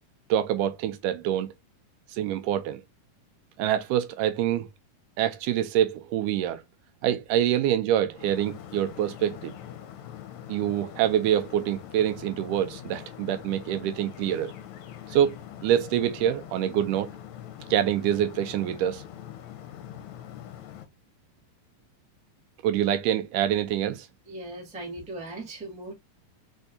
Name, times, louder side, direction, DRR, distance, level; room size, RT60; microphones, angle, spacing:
voice 1, 0.3-1.5 2.1-2.8 3.6-4.7 5.2-6.6 7.0-9.5 10.5-14.5 15.1-17.1 17.7-19.0 22.6-24.1, right 11 dB, 80° right, 2.1 m, -26 dB
sound 1, 8.1-20.9, left 10 dB, 75° left, 1.8 m, -43 dB
voice 2, 24.2-25.9, right 2 dB, 10° right, 0.4 m, -38 dB
4.5 x 4.4 x 2.6 m
omnidirectional pair, 3.8 m